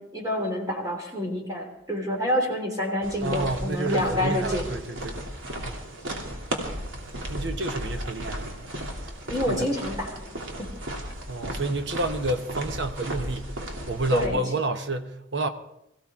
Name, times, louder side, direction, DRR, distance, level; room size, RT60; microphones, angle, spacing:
voice 1, 0.0-4.7 9.3-10.2 14.1-14.4, left 1 dB, 20° right, 3.1 m, -27 dB
sound 1, 3.0-14.3, right 1 dB, 85° right, 2.9 m, -35 dB
voice 2, 3.2-5.2 5.6-5.8 7.3-8.7 9.0-9.1 9.5-9.7 11.3-15.5, right 2 dB, 60° right, 1.1 m, -30 dB
22.5 x 16.0 x 3.7 m
head